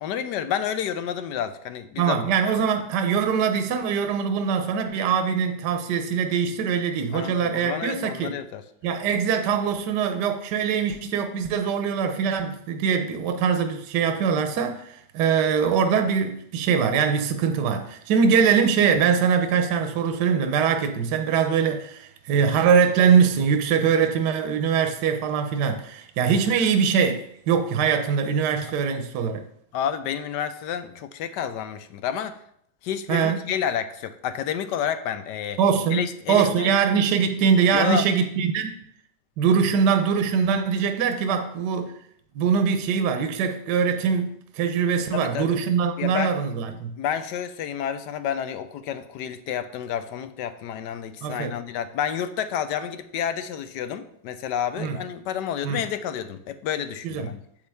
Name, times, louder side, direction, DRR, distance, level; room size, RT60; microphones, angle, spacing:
voice 1, 0.0-2.2 7.1-8.6 29.7-32.4 32.8-35.6 35.9-36.7 37.7-38.1 45.1-45.6 46.0-46.3 47.0-57.4, left 9 dB, 70° left, 11 dB, 1.2 m, -30 dB
voice 2, 2.0-8.3 8.8-29.4 33.1-33.4 35.6-38.7 39.4-41.9 42.4-46.9 51.2-51.5 54.8-55.0 55.6-55.8 57.0-57.3, right 6 dB, 70° right, 7 dB, 1.3 m, -22 dB
8.6 x 8.0 x 3.5 m, 0.69 s
omnidirectional pair, 2.1 m